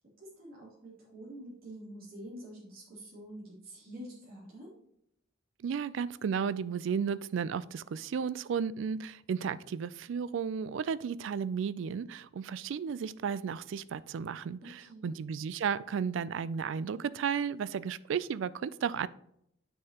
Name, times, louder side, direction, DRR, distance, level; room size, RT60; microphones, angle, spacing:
voice 1, 0.2-4.7 14.6-15.1, right 1 dB, 45° right, -8 dB, 3.0 m, -47 dB
voice 2, 5.6-19.1, right 6 dB, 65° right, 17 dB, 0.3 m, -34 dB
7.7 x 6.3 x 2.9 m, 0.74 s
head